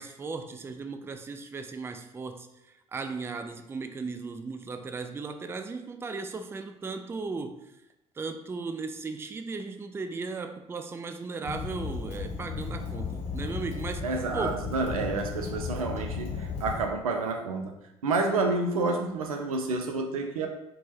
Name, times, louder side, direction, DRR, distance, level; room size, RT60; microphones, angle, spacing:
voice 1, 0.0-2.5 2.9-7.6 8.2-14.6, right 4 dB, 15° right, 9 dB, 0.3 m, -36 dB
Fire, 11.4-16.9, left 5 dB, 35° left, 0.9 m, -35 dB
voice 2, 14.0-17.7 18.0-20.5, right 3 dB, 85° right, 4 dB, 0.4 m, -29 dB
2.9 x 2.2 x 4.2 m, 0.87 s
figure-of-eight pair, 55°, 18 cm